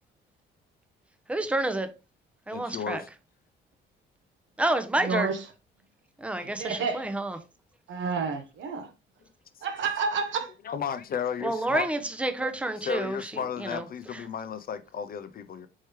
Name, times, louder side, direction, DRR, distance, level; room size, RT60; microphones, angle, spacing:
voice 1, 1.3-1.9 2.5-3.0 4.6-5.3 6.2-7.4 11.4-13.9 14.1-14.2, right 1 dB, 5° right, 0.6 m, -29 dB
voice 2, 2.5-3.1 6.4-6.5 10.7-11.9 12.9-15.7, left 7 dB, 50° left, 0.5 m, -33 dB
voice 3, 5.0-5.4 6.4-7.1 7.9-8.9 9.6-10.5, right 5 dB, 75° right, 1.0 m, -30 dB
4.5 x 3.2 x 3.0 m
cardioid pair, 90°, 20 cm